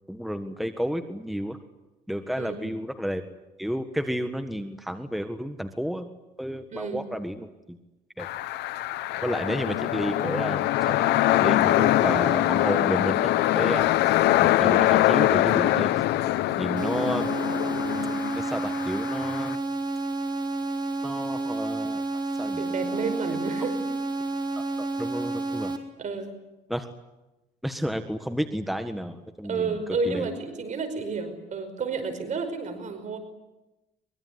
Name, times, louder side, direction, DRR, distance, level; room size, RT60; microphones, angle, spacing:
voice 1, 0.1-1.6 2.1-3.2 3.6-6.1 6.4-7.8 8.2-8.3 9.2-11.1 11.3-15.9 16.6-17.3 18.4-19.6 21.0-22.6 22.9-23.4 24.5-25.7 26.7-26.9 27.6-29.8 30.0-30.3, equal, ahead, 8 dB, 1.6 m, -31 dB
voice 2, 2.4-2.7 6.7-7.1 22.6-23.8 26.0-26.3 29.4-33.2, right 4 dB, 45° right, 7 dB, 5.2 m, -31 dB
sound 1, 8.2-19.6, left 15 dB, 80° left, 1.0 m, -23 dB
sound 2, 16.8-25.8, right 2 dB, 25° right, 3.9 m, -30 dB
23.5 x 23.0 x 9.6 m, 1.0 s
cardioid pair, 110°, 17 cm